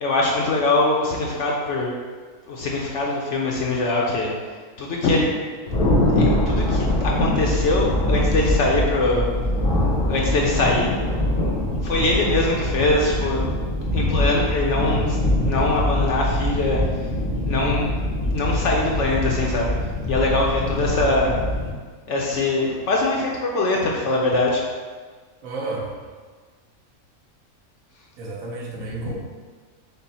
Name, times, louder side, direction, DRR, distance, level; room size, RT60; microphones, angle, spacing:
voice 1, 0.0-1.9 2.5-4.3 4.8-5.3 6.2-9.3 10.1-11.0 11.8-13.4 13.9-15.2 15.4-17.1 17.4-17.9 18.3-19.7 20.1-21.3 22.1-24.6 29.0-29.1, left 2 dB, 65° left, -2 dB, 0.8 m, -22 dB
Thunder, 5.7-21.7, left 1 dB, 90° left, 1.5 m, -23 dB
voice 2, 25.4-25.9 28.2-29.1, right 3 dB, 70° right, -2 dB, 1.1 m, -31 dB
5.4 x 2.1 x 4.0 m, 1.5 s
omnidirectional pair, 1.6 m